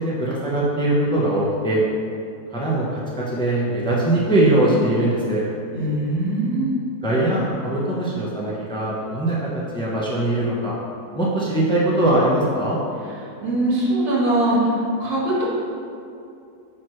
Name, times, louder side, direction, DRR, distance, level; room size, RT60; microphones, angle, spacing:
voice 1, 0.0-1.8 2.5-5.4 7.0-10.8 11.1-12.8, right 1 dB, 5° left, -6 dB, 0.7 m, -21 dB
voice 2, 5.7-6.7 13.4-14.7 15.0-15.4, right 1 dB, 75° right, -7 dB, 2.2 m, -21 dB
8.9 x 4.1 x 3.2 m, 2.5 s
omnidirectional pair, 1.7 m